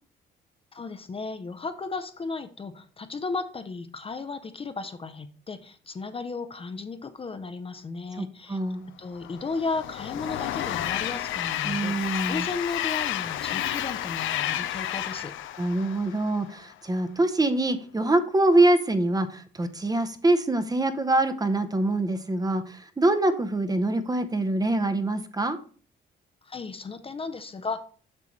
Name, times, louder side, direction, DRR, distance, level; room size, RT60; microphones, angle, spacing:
voice 1, 0.7-8.6 9.0-15.3 26.4-27.8, left 4 dB, 30° left, 9 dB, 0.6 m, -35 dB
voice 2, 8.2-8.8 11.6-12.5 15.6-25.6, right 2 dB, 20° right, 9 dB, 0.7 m, -24 dB
Train, 9.1-16.6, left 12 dB, 80° left, 0.5 m, -31 dB
7.5 x 5.7 x 3.1 m, 0.43 s
cardioid pair, 90°, 20 cm